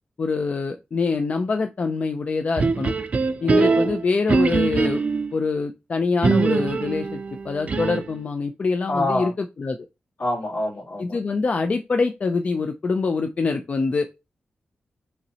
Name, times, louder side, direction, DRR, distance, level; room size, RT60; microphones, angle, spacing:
voice 1, 0.2-2.9 3.4-5.0 5.3-9.8 11.0-14.2, left 4 dB, 45° left, 0.4 m, -25 dB
sound 1, 2.6-5.4 6.2-8.2, right 4 dB, 45° right, 0.4 m, -22 dB
voice 2, 3.4-4.0 8.9-9.3 10.2-11.2, left 1 dB, 75° left, 2.7 m, -27 dB
5.4 x 3.1 x 2.8 m
wide cardioid pair, 120°, 3 cm